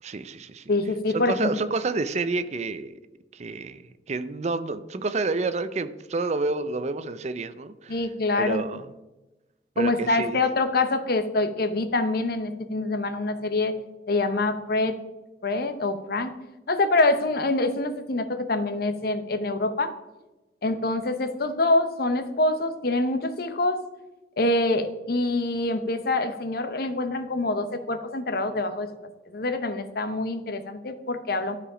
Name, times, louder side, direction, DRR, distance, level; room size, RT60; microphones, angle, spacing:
voice 1, 0.0-0.7 1.1-3.0 3.3-3.8 4.1-8.1 8.4-8.9 9.8-10.4, right 3 dB, 40° right, 12 dB, 0.5 m, -29 dB
voice 2, 0.7-1.5 7.9-8.6 9.8-13.7 14.1-14.9 15.4-16.3 16.7-19.9 20.6-23.8 24.4-28.9 29.3-31.6, left 2 dB, 60° left, 9 dB, 0.8 m, -25 dB
12.5 x 5.0 x 5.0 m, 1.1 s
head